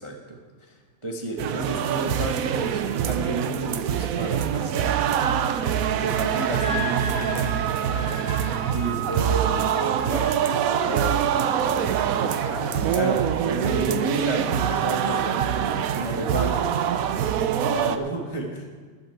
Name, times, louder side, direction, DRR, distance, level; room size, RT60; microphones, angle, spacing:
voice 1, 0.0-5.2 6.0-7.1 8.7-12.4 12.9-13.2 13.5-16.7 17.6-18.7, right 2 dB, 20° right, 0 dB, 0.8 m, -31 dB
sound 1, 1.4-18.0, right 9 dB, 85° right, 0.7 m, -24 dB
Wind instrument woodwind instrument, 6.1-10.4, equal, 5° right, 2.7 m, -35 dB
voice 2, 7.0-9.0 12.1-13.7, left 1 dB, 70° left, -3 dB, 3.7 m, -39 dB
14.0 x 11.0 x 4.5 m, 1.5 s
omnidirectional pair, 2.2 m